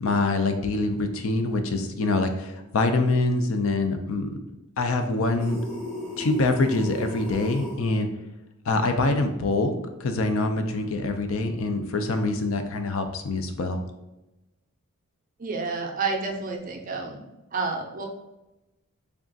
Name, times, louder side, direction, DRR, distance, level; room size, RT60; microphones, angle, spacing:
voice 1, 0.0-4.4 4.8-5.6 6.2-8.1 8.7-9.7 10.0-13.8, left 2 dB, 65° left, 7 dB, 0.5 m, -25 dB
sound 1, 5.4-7.8, left 1 dB, 25° left, 0.8 m, -35 dB
voice 2, 15.4-17.2 17.5-18.1, right 4 dB, 35° right, 2 dB, 0.5 m, -29 dB
3.5 x 2.4 x 3.8 m, 0.98 s
head